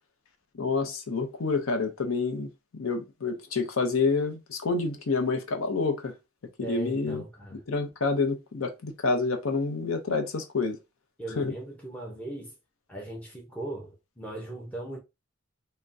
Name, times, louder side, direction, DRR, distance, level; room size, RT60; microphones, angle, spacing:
voice 1, 0.5-6.1 6.6-7.2 7.5-10.8 11.3-11.5, left 4 dB, 90° left, 0.6 m, -28 dB
voice 2, 6.6-7.6 11.2-12.5 12.9-15.0, right 2 dB, 5° left, 0.6 m, -38 dB
3.4 x 2.1 x 2.5 m
head